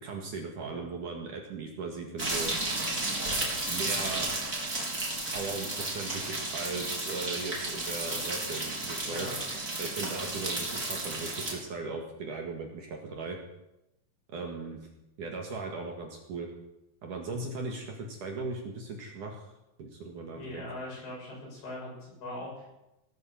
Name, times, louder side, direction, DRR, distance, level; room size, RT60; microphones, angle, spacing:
voice 1, 0.0-2.5 3.7-4.3 5.3-9.3 9.8-13.4 14.3-14.9 15.2-16.5 17.0-19.5 19.8-20.6, right 3 dB, 55° right, 1 dB, 2.9 m, -38 dB
sound 1, 2.2-11.5, right 2 dB, 20° right, 3.8 m, -33 dB
voice 2, 9.0-9.4 20.3-22.7, left 1 dB, 60° left, -3 dB, 8.8 m, -41 dB
18.5 x 9.3 x 7.6 m, 0.91 s
omnidirectional pair, 4.9 m